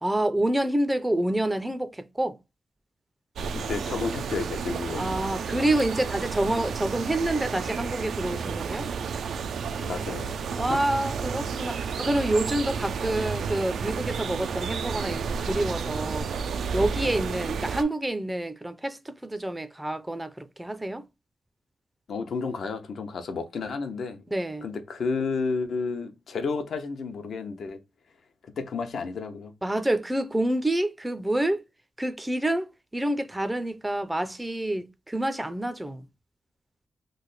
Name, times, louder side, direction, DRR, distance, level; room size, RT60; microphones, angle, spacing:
voice 1, 0.0-2.4 4.9-8.9 10.6-16.4 16.7-21.0 24.3-24.7 29.6-31.6 32.0-36.1, right 1 dB, 10° right, 0.4 m, -28 dB
sound 1, 3.4-17.8, right 6 dB, 80° right, 0.3 m, -31 dB
voice 2, 3.5-5.2 9.8-10.3 22.1-24.2 24.6-27.8 28.4-29.5, left 4 dB, 70° left, 0.7 m, -31 dB
3.2 x 2.1 x 3.9 m
cardioid pair, 90°, 0 cm